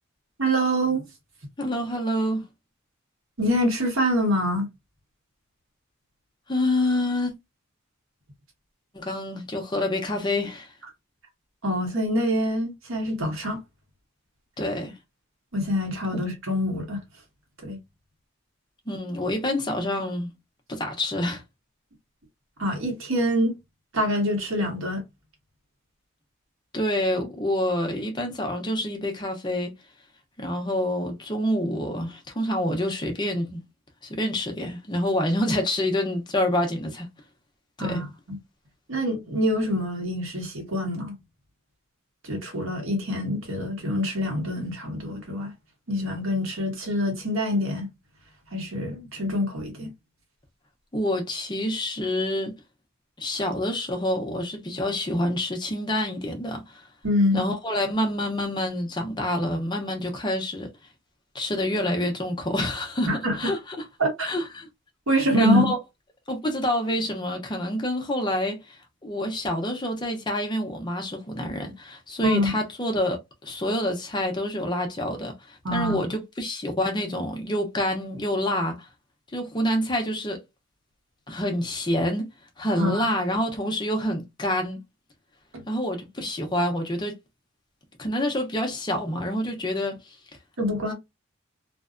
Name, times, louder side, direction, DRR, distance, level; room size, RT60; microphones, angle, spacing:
voice 1, 0.4-1.0 3.4-4.7 11.6-13.6 15.5-17.0 17.6-17.8 22.6-23.6 23.9-25.0 37.8-38.4 38.9-41.2 42.2-45.5 45.9-47.9 48.5-49.9 57.0-57.4 63.1-63.5 64.0-64.3 65.1-65.7 72.2-72.5 75.6-76.0 82.8-83.1 85.5-85.6 90.6-90.9, equal, 85° right, 1.2 m, -25 dB
voice 2, 1.6-2.4 6.5-7.3 8.9-10.7 14.6-14.9 18.9-20.3 20.7-21.4 26.7-29.7 30.4-33.6 34.0-37.1 37.8-38.0 50.9-52.5 53.2-56.8 57.3-60.7 61.3-63.1 63.4-63.8 64.2-64.7 65.3-65.8 66.3-78.9 79.3-80.4 81.3-82.2 82.6-84.8 85.7-87.1 88.0-90.2, left 1 dB, 20° left, 0.7 m, -27 dB
2.6 x 2.2 x 2.5 m
head